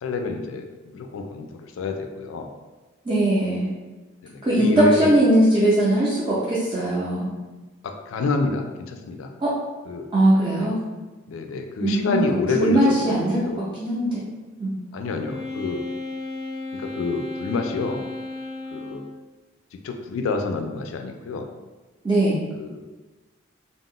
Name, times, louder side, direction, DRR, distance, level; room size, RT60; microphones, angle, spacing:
voice 1, 0.0-2.5 4.2-5.1 7.8-9.3 9.9-10.1 10.6-10.7 11.3-13.7 14.9-15.8 16.7-18.0 18.7-19.0 19.7-21.5 22.6-22.9, left 4 dB, 80° left, 5 dB, 0.3 m, -28 dB
voice 2, 3.1-3.7 4.4-7.3 9.4-9.5 10.1-10.7 11.8-12.3 12.5-13.4 13.8-14.2 14.6-14.7 22.0-22.4, right 1 dB, 25° right, -9 dB, 0.4 m, -20 dB
Wind instrument woodwind instrument, 15.1-19.2, left 2 dB, 75° right, 0.7 m, -34 dB
2.3 x 2.0 x 3.6 m, 1.2 s
head